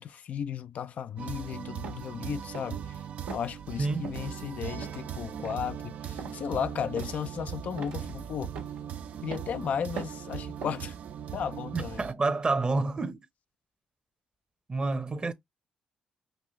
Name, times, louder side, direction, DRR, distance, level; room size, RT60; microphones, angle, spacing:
voice 1, 0.0-3.0 3.3-8.5 9.2-10.9 11.3-12.0, left 8 dB, 65° left, 0.3 m, -35 dB
sound 1, 1.2-12.1, right 9 dB, 65° right, 0.5 m, -39 dB
sound 2, 1.8-2.1 2.5-2.9 3.3-3.5 4.0-4.3 4.7-5.0 5.4-5.7 6.2-6.4 7.0-7.3 7.8-8.1 8.5-8.8 9.3-9.6 10.0-10.3 10.6-10.9, right 5 dB, 90° right, 1.4 m, -41 dB
voice 2, 3.8-4.1 11.7-13.2 14.7-15.3, right 3 dB, 35° right, 0.9 m, -28 dB
5.5 x 2.4 x 3.1 m
supercardioid pair, 55°, 3 cm